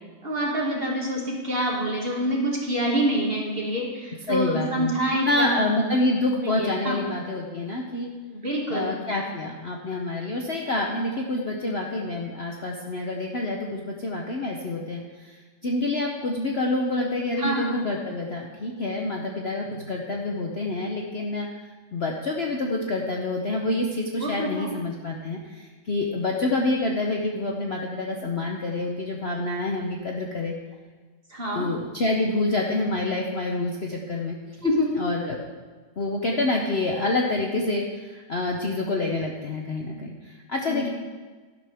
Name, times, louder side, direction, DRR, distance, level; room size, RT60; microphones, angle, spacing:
voice 1, 0.2-5.7 6.4-7.0 8.3-9.0 17.4-17.7 24.2-24.7 31.3-31.7 34.6-34.9 40.7-40.9, equal, 35° right, -2 dB, 2.3 m, -26 dB
voice 2, 4.3-8.1 8.7-21.5 21.9-30.5 31.5-34.6 35.0-35.4 36.0-40.9, left 2 dB, 45° left, 0 dB, 0.9 m, -27 dB
11.5 x 11.5 x 3.5 m, 1.4 s
omnidirectional pair, 1.8 m